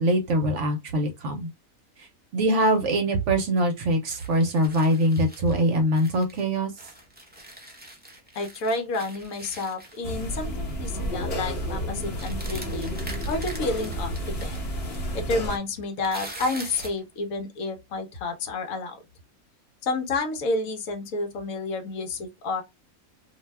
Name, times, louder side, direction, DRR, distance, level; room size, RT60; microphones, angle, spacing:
voice 1, 0.0-1.5 2.0-2.1 2.3-6.7, right 1 dB, 60° right, 0.9 m, -23 dB
sound 1, 4.1-6.4 6.8-10.4 10.7-10.9 11.2-11.5 12.2-14.6 14.9-15.0 15.4-17.0, right 1 dB, 15° right, 0.3 m, -43 dB
voice 2, 8.3-14.6 15.1-19.0 19.8-22.6, left 3 dB, 70° left, 1.1 m, -30 dB
sound 2, 10.0-15.6, equal, 50° left, 1.0 m, -31 dB
2.6 x 2.2 x 3.1 m
omnidirectional pair, 1.5 m